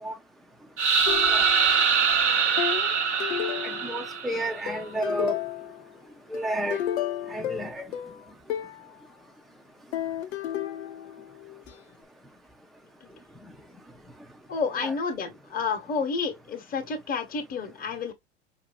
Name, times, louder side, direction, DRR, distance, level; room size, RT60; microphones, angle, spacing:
sound 1, 0.8-4.6, right 6 dB, 90° right, 1.1 m, -23 dB
sound 2, 1.1-1.9 2.6-4.2 4.7-5.9 6.3-8.9 9.9-11.7, left 11 dB, 75° left, 0.7 m, -33 dB
voice 1, 3.6-5.4 6.3-6.8 7.3-7.9 14.8-14.9, right 1 dB, ahead, 0.6 m, -31 dB
voice 2, 14.5-18.1, left 5 dB, 25° left, 1.1 m, -30 dB
4.6 x 2.7 x 2.4 m
hypercardioid pair, 85°, 34 cm